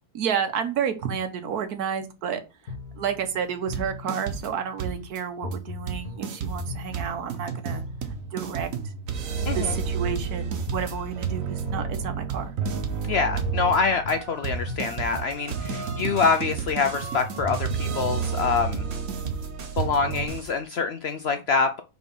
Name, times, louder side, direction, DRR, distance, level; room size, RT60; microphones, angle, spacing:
voice 1, 0.1-2.4 3.0-7.8 8.3-8.7 9.5-12.5 18.9-19.0, right 7 dB, 90° right, 8 dB, 1.4 m, -30 dB
sound 1, 2.7-4.6 5.4-8.5 9.4-12.5 13.4-16.5 17.4-18.8, left 2 dB, 85° left, 1.7 m, -38 dB
sound 2, 3.7-4.5 4.8-5.2 5.5-5.6 5.9-20.3, right 6 dB, 65° right, 1.3 m, -31 dB
voice 2, 9.5-9.8 13.0-18.8 19.8-21.8, left 5 dB, 65° left, 7 dB, 0.6 m, -25 dB
sound 3, 15.1-20.6, right 6 dB, 40° right, 0.5 m, -39 dB
4.5 x 4.1 x 5.3 m, 0.30 s
omnidirectional pair, 1.6 m